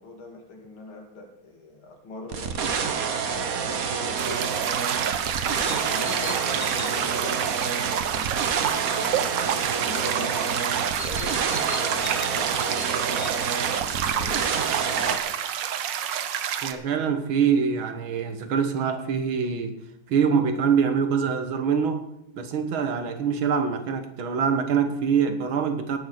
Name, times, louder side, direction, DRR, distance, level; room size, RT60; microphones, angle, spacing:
voice 1, 0.0-4.4 5.5-8.3 8.7-10.6 10.9-14.4 14.8-15.4, left 2 dB, 90° left, 1 dB, 3.3 m, -41 dB
sound 1, 2.3-15.2, right 6 dB, 50° right, 1.3 m, -28 dB
sound 2, 4.2-16.7, right 9 dB, 70° right, 1.5 m, -29 dB
sound 3, 5.6-7.1 10.8-13.4, left 6 dB, 40° left, 1.1 m, -40 dB
voice 2, 16.5-19.8 20.1-22.0 22.3-26.0, right 6 dB, 85° right, 8 dB, 2.1 m, -24 dB
17.5 x 6.6 x 6.5 m, 0.80 s
omnidirectional pair, 2.2 m